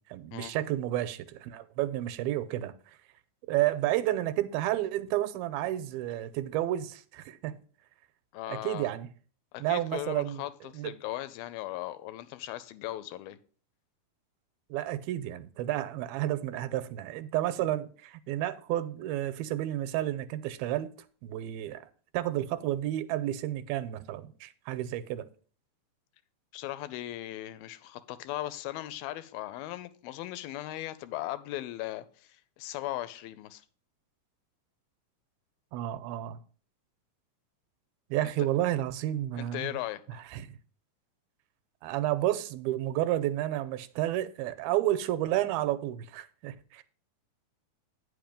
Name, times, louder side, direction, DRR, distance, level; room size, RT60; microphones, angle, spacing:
voice 1, 0.1-2.7 3.5-7.5 8.5-9.1 9.6-10.4 10.7-10.9 14.7-20.9 21.2-21.9 22.1-25.3 35.7-36.4 38.1-39.8 40.3-40.5 41.8-46.8, right 14 dB, 90° right, 2.5 m, -31 dB
voice 2, 8.3-8.9 9.5-13.4 26.5-33.6 39.4-40.2, left 15 dB, 85° left, 2.4 m, -38 dB
9.3 x 5.5 x 5.1 m
omnidirectional pair, 4.3 m